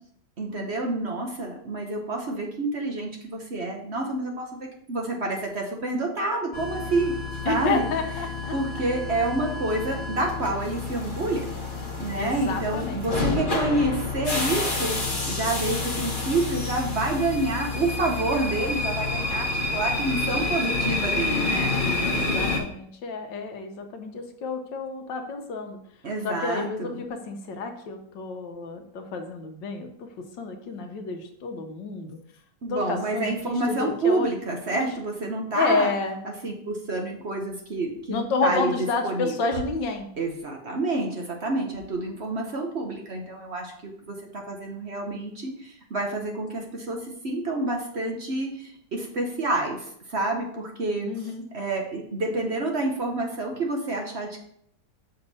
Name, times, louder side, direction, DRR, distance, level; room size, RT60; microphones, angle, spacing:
voice 1, 0.4-7.1 7.4-7.9 8.5-11.5 12.0-15.0 15.3-21.7 26.0-27.0 32.6-35.9 36.2-38.7 39.0-39.3 40.2-54.4, right 2 dB, 45° right, 1 dB, 1.0 m, -28 dB
sound 1, 6.5-22.6, left 3 dB, 30° left, 1.3 m, -29 dB
voice 2, 7.5-8.5 12.2-13.1 22.0-25.8 26.2-30.1 30.4-32.2 32.7-34.3 34.7-34.9 35.5-36.2 38.1-40.1 51.1-51.4, left 4 dB, 80° left, 5 dB, 1.5 m, -30 dB
6.6 x 5.3 x 4.1 m, 0.66 s
omnidirectional pair, 2.0 m